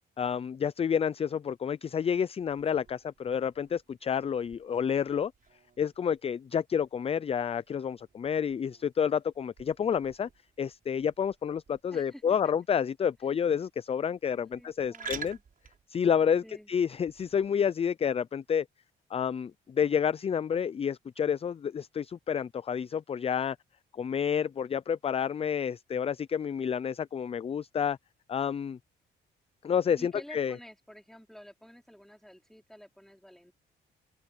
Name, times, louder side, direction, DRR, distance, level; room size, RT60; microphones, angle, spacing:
voice 1, 0.2-5.3 5.8-10.3 10.6-15.4 15.9-16.4 16.7-18.7 19.1-23.6 23.9-28.0 28.3-28.8 29.6-30.6, left 7 dB, 30° left, 0.4 m, -29 dB
sound 1, 2.4-17.5, right 6 dB, 45° right, 6.5 m, -50 dB
voice 2, 11.9-12.2 14.3-15.4 16.4-16.7 29.9-33.5, equal, ahead, 4.7 m, -51 dB
cardioid pair, 90°, 20 cm